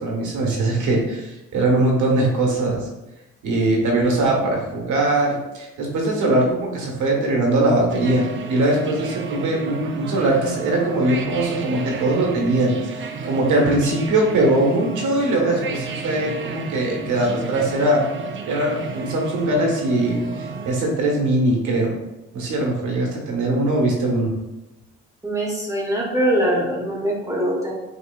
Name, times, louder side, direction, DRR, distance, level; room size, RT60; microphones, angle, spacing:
voice 1, 0.0-2.9 3.4-18.0 18.4-21.9 22.3-24.3, right 2 dB, 80° right, -1 dB, 1.3 m, -21 dB
sound 1, 7.9-20.8, right 5 dB, 40° right, 0.5 m, -32 dB
voice 2, 25.2-27.7, right 1 dB, 10° right, -3 dB, 1.1 m, -22 dB
5.6 x 3.1 x 2.3 m, 1.0 s
cardioid pair, 90°, 30 cm